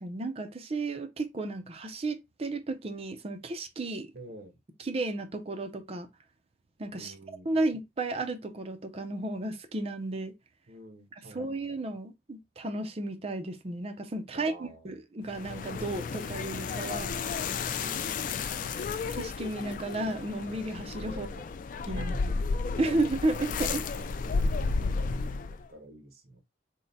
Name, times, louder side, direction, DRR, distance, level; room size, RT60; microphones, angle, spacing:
voice 1, 0.0-4.1 4.8-6.1 6.8-7.1 7.5-10.3 11.3-17.1 19.1-21.3 21.9-22.4 22.8-23.8, right 2 dB, 35° right, 0.5 m, -33 dB
voice 2, 4.1-4.6 6.9-7.6 10.7-11.8 14.3-15.0 17.7-18.5 21.1-21.5 21.9-22.4 23.7-24.7 25.1-26.4, right 2 dB, 60° right, 1.0 m, -48 dB
sound 1, 15.3-25.7, left 4 dB, 50° left, 0.3 m, -33 dB
3.7 x 2.1 x 4.0 m
head